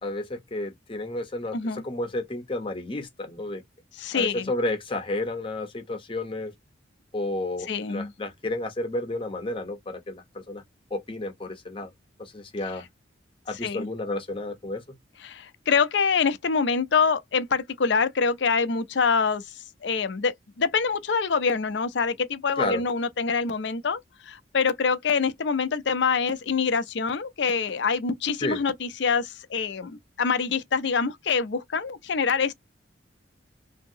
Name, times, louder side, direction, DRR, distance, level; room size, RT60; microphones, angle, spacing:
voice 1, 0.0-3.6 4.1-6.5 7.1-10.6 10.9-11.9 12.2-12.8 13.5-14.8 22.6-22.8 28.4-28.6, left 2 dB, 25° left, 0.8 m, -31 dB
voice 2, 1.5-1.8 4.0-4.4 7.7-8.1 13.6-13.9 15.2-19.4 19.8-24.0 24.3-32.5, left 5 dB, 65° left, 0.5 m, -25 dB
2.8 x 2.7 x 2.7 m
head